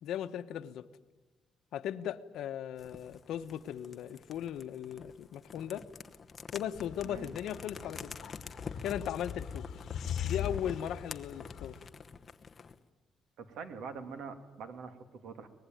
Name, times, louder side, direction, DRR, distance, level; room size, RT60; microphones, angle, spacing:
voice 1, 0.0-0.9 1.7-5.9 6.5-8.1 8.8-9.6 10.2-11.7, left 10 dB, 75° left, 11 dB, 1.0 m, -37 dB
sound 1, 2.8-12.8, left 5 dB, 25° left, 1.0 m, -48 dB
sound 2, 6.7-11.9, left 9 dB, 50° left, 2.1 m, -41 dB
voice 2, 13.4-15.5, right 5 dB, 75° right, 9 dB, 2.4 m, -44 dB
24.0 x 20.5 x 9.2 m, 1.2 s
cardioid pair, 170°, 0 cm